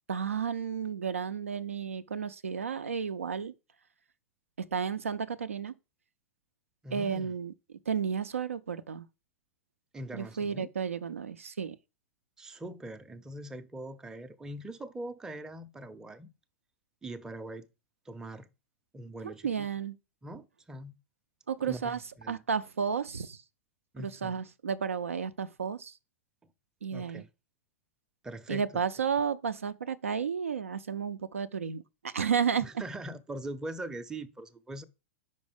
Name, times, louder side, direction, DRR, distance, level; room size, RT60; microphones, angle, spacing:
voice 1, 0.1-3.5 4.7-5.7 6.9-7.5 7.9-9.1 10.1-11.8 19.2-20.0 21.5-22.0 22.3-23.4 24.0-25.9 26.8-27.2 28.5-32.7, right 6 dB, 75° right, 0.4 m, -32 dB
voice 2, 6.8-7.3 9.9-10.7 12.4-16.3 17.0-17.7 18.1-18.5 18.9-19.7 20.2-20.9 21.6-21.9 22.2-22.4 23.9-24.4 26.4-26.5 26.9-27.3 28.2-28.8 32.6-34.8, right 1 dB, 10° right, 0.5 m, -42 dB
5.4 x 4.5 x 5.0 m
figure-of-eight pair, 100°, 7 cm